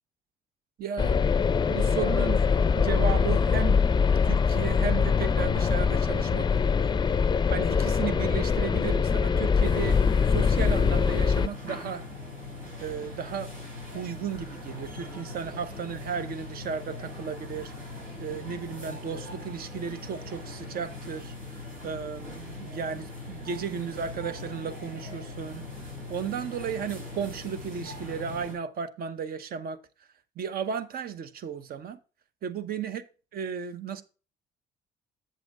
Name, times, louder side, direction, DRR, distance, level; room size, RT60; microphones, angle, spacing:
voice 1, 0.8-1.2 1.7-2.5 2.8-3.8 4.2-7.2 7.5-10.0 10.3-12.0 12.8-13.5 13.9-29.8 30.4-32.0 32.4-33.0 33.3-34.0, right 7 dB, 60° right, 0.9 m, -34 dB
sound 1, 1.0-11.5, left 6 dB, 25° left, 0.5 m, -23 dB
sound 2, 9.6-28.5, left 2 dB, 90° right, 4.8 m, -41 dB
7.7 x 7.6 x 3.7 m
hypercardioid pair, 60°, 18 cm